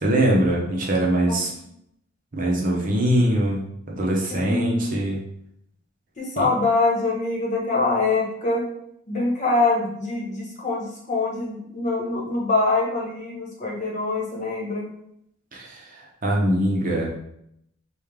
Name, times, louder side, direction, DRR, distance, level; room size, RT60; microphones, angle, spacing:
voice 1, 0.0-1.5 2.3-3.6 3.9-5.2 6.4-6.5 15.5-15.8 16.2-17.1, right 1 dB, 40° right, -2 dB, 0.9 m, -22 dB
voice 2, 1.2-1.6 4.3-5.0 6.2-8.7 9.1-14.9, left 3 dB, 35° left, -3 dB, 1.2 m, -24 dB
5.1 x 2.4 x 3.5 m, 0.75 s
head